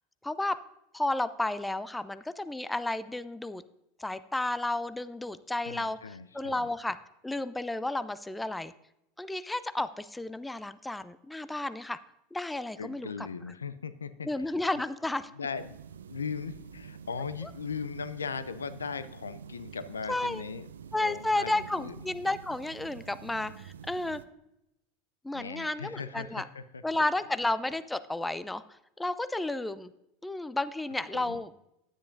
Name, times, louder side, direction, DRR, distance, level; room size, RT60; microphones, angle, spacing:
voice 1, 0.2-0.6 0.9-3.6 4.0-7.0 7.2-8.7 9.2-12.0 12.3-13.3 14.2-15.3 17.4-17.5 20.1-20.4 20.9-24.2 25.2-26.5 26.8-29.9 30.2-31.5, left 2 dB, 10° left, 14 dB, 0.5 m, -32 dB
voice 2, 5.7-6.7 12.8-14.3 15.3-20.7 21.0-21.9 25.3-27.0 31.1-31.4, left 5 dB, 85° left, 14 dB, 0.5 m, -38 dB
sound 1, 15.5-24.3, right 8 dB, 75° right, 0.4 m, -48 dB
10.0 x 9.6 x 2.6 m, 0.85 s
figure-of-eight pair, 80°, 0 cm